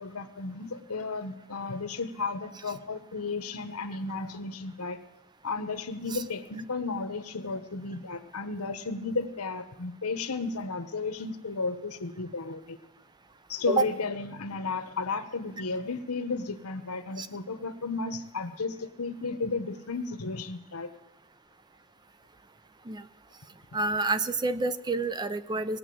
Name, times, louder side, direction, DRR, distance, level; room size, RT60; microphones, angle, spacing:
voice 1, 0.0-5.0 5.4-12.8 13.5-20.9, left 3 dB, 85° left, 9 dB, 1.1 m, -33 dB
voice 2, 23.7-25.8, right 3 dB, 20° right, 13 dB, 0.4 m, -28 dB
18.5 x 7.7 x 7.7 m, 1.0 s
head